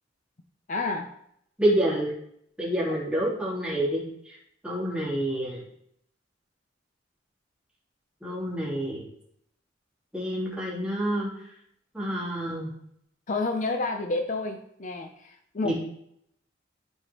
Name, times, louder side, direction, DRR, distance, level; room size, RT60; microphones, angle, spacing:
voice 1, 0.7-1.1 13.3-15.7, left 3 dB, 40° left, 5 dB, 0.6 m, -29 dB
voice 2, 1.6-2.1 2.6-4.0 4.3-4.4 4.6-5.6 8.2-9.0 10.1-11.3 11.9-12.7 15.6-15.7, right 1 dB, 5° right, -7 dB, 3.0 m, -27 dB
13.5 x 4.9 x 3.0 m, 0.72 s
head